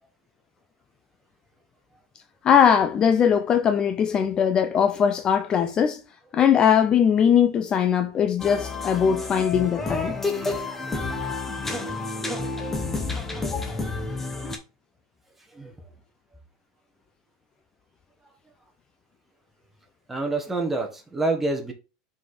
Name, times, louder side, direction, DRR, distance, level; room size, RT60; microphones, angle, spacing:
voice 1, 2.4-6.0 6.3-10.2 13.4-13.8, left 8 dB, 30° left, 0.4 m, -20 dB
sound 1, 8.4-14.6, left 3 dB, 10° left, 1.1 m, -30 dB
voice 2, 20.1-21.7, right 2 dB, 10° right, 1.5 m, -27 dB
5.0 x 4.2 x 4.8 m
supercardioid pair, 130°, 3 cm